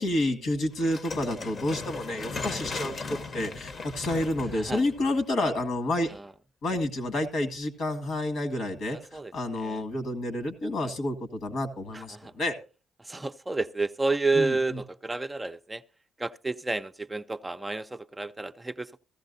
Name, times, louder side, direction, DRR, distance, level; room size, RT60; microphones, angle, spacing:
voice 1, 0.0-6.1 6.6-12.5 14.3-14.5, left 1 dB, 75° left, 1.7 m, -29 dB
sound 1, 0.8-5.9, left 4 dB, 45° left, 0.9 m, -38 dB
voice 2, 11.9-12.3 13.0-15.8 16.2-19.0, right 3 dB, 15° right, 0.5 m, -30 dB
15.5 x 14.0 x 2.6 m
cardioid pair, 90°, 0 cm